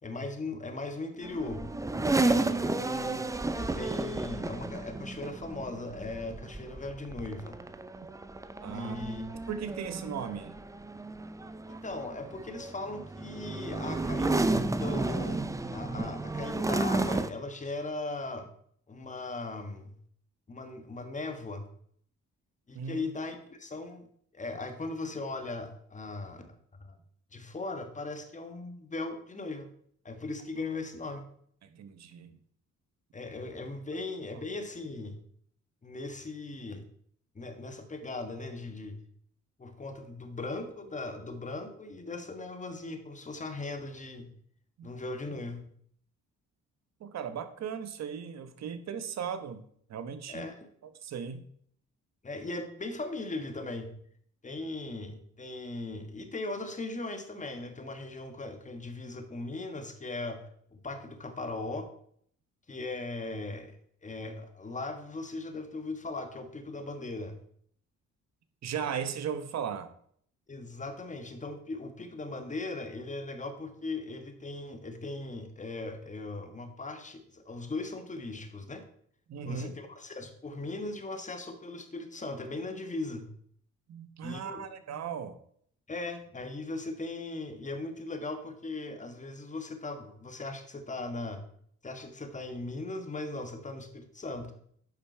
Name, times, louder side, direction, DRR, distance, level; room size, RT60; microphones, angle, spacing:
voice 1, 0.0-1.7 2.2-7.6 8.7-9.2 11.7-15.4 15.7-18.5 18.9-20.0 20.5-21.7 22.7-24.0 24.3-26.5 26.8-27.0 27.3-29.7 30.0-31.2 33.1-35.2 35.8-36.8 37.3-39.0 39.6-44.3 44.8-45.6 50.3-50.7 52.2-54.0 54.4-61.9 62.7-63.7 64.0-67.4 70.5-78.8 79.4-83.3 84.2-84.6 85.9-91.4 91.8-94.5, left 2 dB, 25° left, 7 dB, 1.5 m, -38 dB
sound 1, 1.2-17.3, right 2 dB, 10° right, 0.5 m, -32 dB
voice 2, 8.6-10.6 22.7-23.1 31.6-32.4 44.8-44.9 47.0-49.6 49.9-50.5 51.0-51.5 68.6-69.9 79.3-79.7 83.9-85.4, right 7 dB, 60° right, 10 dB, 1.1 m, -37 dB
9.3 x 5.7 x 4.5 m, 0.62 s
cardioid pair, 90°, 30 cm